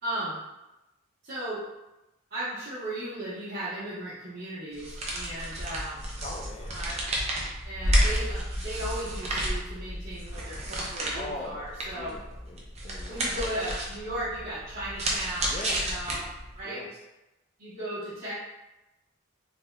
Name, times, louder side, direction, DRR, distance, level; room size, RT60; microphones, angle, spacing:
voice 1, 0.0-0.4 1.2-1.6 2.3-6.0 6.7-7.0 7.6-12.1 13.1-16.3 16.6-16.8 17.6-18.3, right 1 dB, 50° right, -13 dB, 0.9 m, -36 dB
sound 1, 4.7-16.6, right 1 dB, 35° right, 0.5 m, -31 dB
voice 2, 6.2-6.8 11.1-11.6 11.9-13.5 15.5-15.9 16.6-17.0, left 2 dB, 30° left, 0 dB, 0.3 m, -40 dB
3.4 x 2.7 x 2.2 m, 0.99 s
head